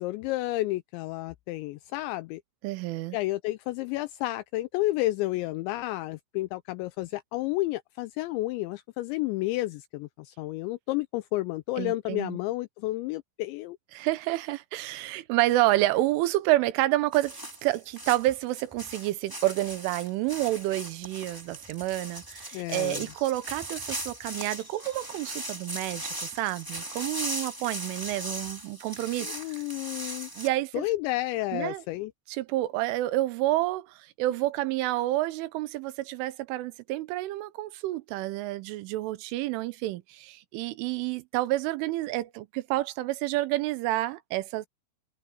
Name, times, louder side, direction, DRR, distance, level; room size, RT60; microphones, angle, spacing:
voice 1, 0.0-2.4 3.1-13.8 22.5-23.1 29.2-30.3 30.7-32.1, left 18 dB, 85° left, 2.7 m, -31 dB
voice 2, 2.6-3.2 11.8-12.4 13.9-29.3 30.4-30.8 31.5-31.8 32.3-44.7, right 17 dB, 85° right, 3.4 m, -29 dB
sound 1, 17.1-30.5, right 1 dB, 10° right, 0.9 m, -39 dB
omnidirectional pair, 5.6 m